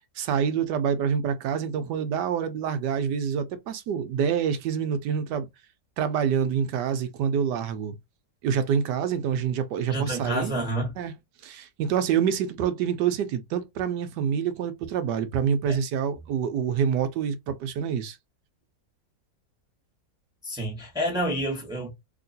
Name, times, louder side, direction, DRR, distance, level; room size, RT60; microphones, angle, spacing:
voice 1, 0.2-5.5 6.0-8.0 8.4-10.6 11.0-11.1 11.4-18.2, right 7 dB, 85° right, 1.2 m, -26 dB
voice 2, 9.9-10.9 15.7-15.8 20.4-21.9, right 1 dB, 5° right, 1.2 m, -29 dB
3.0 x 2.9 x 2.7 m
omnidirectional pair, 1.8 m